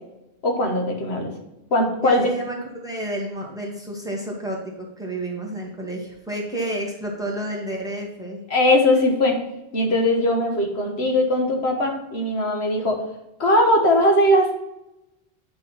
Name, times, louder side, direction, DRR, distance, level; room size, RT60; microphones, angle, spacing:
voice 1, 0.4-1.3 1.7-2.2 8.5-9.4 9.7-13.0 13.4-14.5, left 1 dB, 75° left, 2 dB, 1.6 m, -20 dB
voice 2, 2.0-8.4, right 1 dB, 5° right, -2 dB, 1.8 m, -30 dB
8.9 x 4.0 x 5.6 m, 0.92 s
omnidirectional pair, 1.1 m